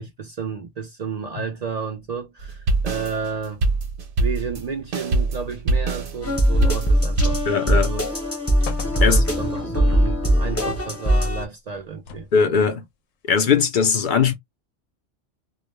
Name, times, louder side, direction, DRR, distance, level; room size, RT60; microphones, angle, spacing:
voice 1, 0.0-3.6 4.2-8.1 9.0-12.3, right 5 dB, 70° right, 0.3 m, -32 dB
sound 1, 2.4-7.5, right 2 dB, 55° right, 0.8 m, -23 dB
sound 2, 6.2-11.4, equal, 15° left, 0.6 m, -21 dB
sound 3, 7.0-7.6 8.0-8.1 8.6-9.6 11.7-12.5 13.3-13.4, left 6 dB, 85° left, 0.9 m, -38 dB
voice 2, 7.5-7.9 9.0-9.3 12.3-12.8 13.2-14.3, left 6 dB, 65° left, 0.5 m, -19 dB
2.3 x 2.1 x 3.0 m
omnidirectional pair, 1.3 m